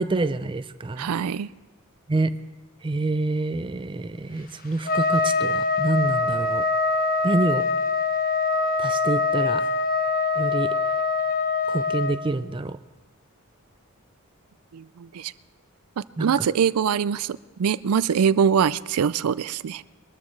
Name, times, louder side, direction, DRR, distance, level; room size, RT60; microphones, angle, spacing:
voice 1, 0.0-1.1 2.1-2.4 2.8-6.6 7.2-7.7 8.8-9.6 10.4-10.7 11.7-12.8 16.2-16.3, right 2 dB, 20° right, 12 dB, 0.4 m, -26 dB
voice 2, 1.0-1.5 14.7-15.3 16.2-19.8, right 7 dB, 80° right, 18 dB, 0.4 m, -23 dB
Trumpet, 4.9-12.2, left 4 dB, 40° left, 1.0 m, -24 dB
23.0 x 13.5 x 3.2 m, 1.2 s
head